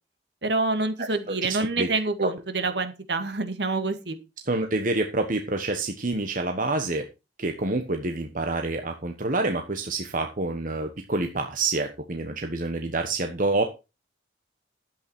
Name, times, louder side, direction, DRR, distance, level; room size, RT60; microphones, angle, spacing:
voice 1, 0.4-4.2, right 3 dB, 65° right, 7 dB, 2.1 m, -27 dB
voice 2, 1.3-1.9 2.2-2.3 4.5-7.0 7.4-13.6, right 2 dB, 45° right, 5 dB, 1.3 m, -27 dB
12.0 x 8.7 x 4.5 m, 0.28 s
head